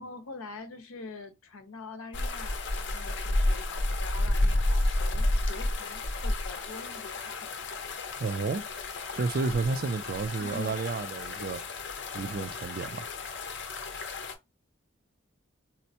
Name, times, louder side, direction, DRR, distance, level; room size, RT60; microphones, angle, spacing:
voice 1, 0.0-7.5 10.4-10.8, left 3 dB, 85° left, 0.7 m, -44 dB
sound 1, 2.1-14.3, left 1 dB, 55° left, 0.6 m, -31 dB
voice 2, 8.2-8.6 9.2-11.6 12.1-13.1, right 4 dB, 45° right, 0.3 m, -31 dB
4.2 x 2.1 x 2.7 m
head